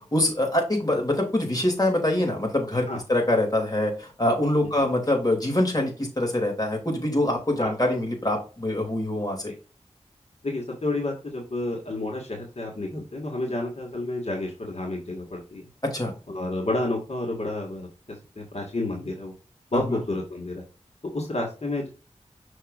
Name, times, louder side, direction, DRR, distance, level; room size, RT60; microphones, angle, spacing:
voice 1, 0.1-9.4 15.8-16.1 19.9-20.0, left 1 dB, 30° left, 0 dB, 2.8 m, -24 dB
voice 2, 10.4-15.6 16.3-19.3 19.7-20.6 21.1-21.9, left 2 dB, 60° left, -1 dB, 1.8 m, -30 dB
6.2 x 6.1 x 2.5 m, 0.34 s
wide cardioid pair, 65°, 12 cm